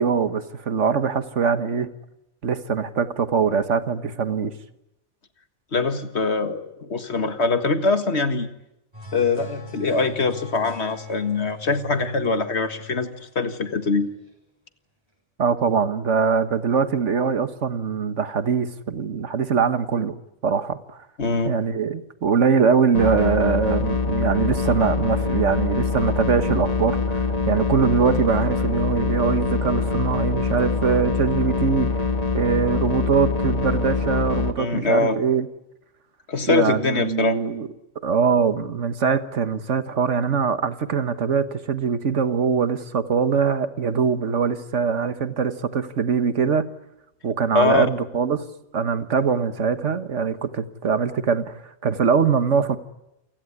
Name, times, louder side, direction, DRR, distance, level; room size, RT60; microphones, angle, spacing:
voice 1, 0.0-1.9 2.4-4.5 15.4-20.1 20.4-21.0 21.4-32.1 32.3-35.5 36.4-37.7 38.0-46.7 47.2-48.5 48.7-52.8, right 6 dB, 80° right, 10 dB, 1.7 m, -22 dB
voice 2, 5.7-8.5 9.1-13.1 13.4-14.1 21.2-21.5 34.6-35.2 36.3-37.4 47.5-47.9, left 3 dB, 65° left, 8 dB, 2.0 m, -23 dB
sound 1, 8.9-14.3, left 4 dB, 20° right, 7.3 m, -41 dB
sound 2, 22.9-34.5, left 4 dB, 35° left, 1.5 m, -24 dB
28.5 x 17.0 x 9.8 m, 0.89 s
omnidirectional pair, 1.2 m